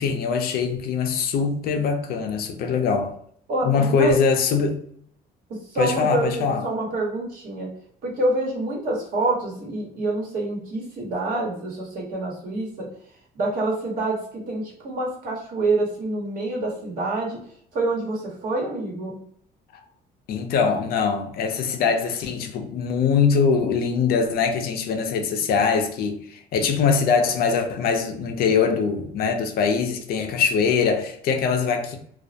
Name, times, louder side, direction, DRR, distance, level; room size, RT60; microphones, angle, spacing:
voice 1, 0.0-3.2 3.6-4.8 5.8-6.6 20.3-32.0, left 5 dB, 65° left, 0.5 m, -22 dB
voice 2, 3.5-4.2 5.7-7.7 8.0-12.9 13.3-17.4 17.7-19.1, right 2 dB, 55° right, 1.1 m, -26 dB
2.3 x 2.0 x 2.7 m
cardioid pair, 110°, 17 cm